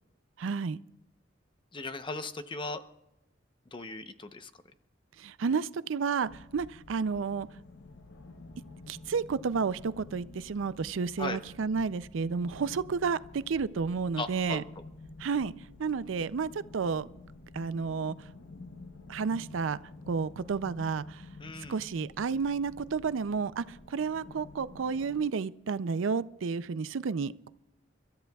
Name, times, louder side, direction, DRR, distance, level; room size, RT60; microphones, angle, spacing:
voice 1, 0.4-0.8 5.2-7.5 8.9-14.6 15.2-15.5 15.8-17.1 17.5-18.1 19.1-19.8 20.1-21.2 21.7-27.5, right 5 dB, 90° right, 0.5 m, -31 dB
voice 2, 1.7-2.8 3.7-4.5 11.2-11.4 14.2-14.6 21.4-21.8, left 3 dB, 25° left, 0.8 m, -37 dB
sound 1, 6.2-25.3, left 2 dB, 65° left, 0.9 m, -50 dB
30.0 x 13.5 x 2.3 m
head